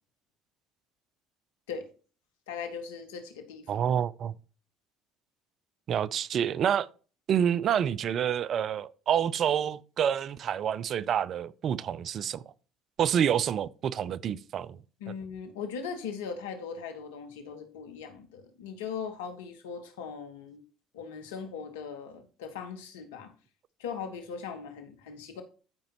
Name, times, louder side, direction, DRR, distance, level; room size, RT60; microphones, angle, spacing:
voice 1, 2.5-3.8 15.0-20.6 20.9-23.3 23.8-25.4, left 6 dB, 85° left, 1.4 m, -39 dB
voice 2, 3.7-4.3 5.9-6.9 7.3-12.4 13.0-14.8 15.1-15.2, right 9 dB, 55° right, 0.5 m, -28 dB
13.0 x 5.2 x 3.0 m
hypercardioid pair, 65°, 0 cm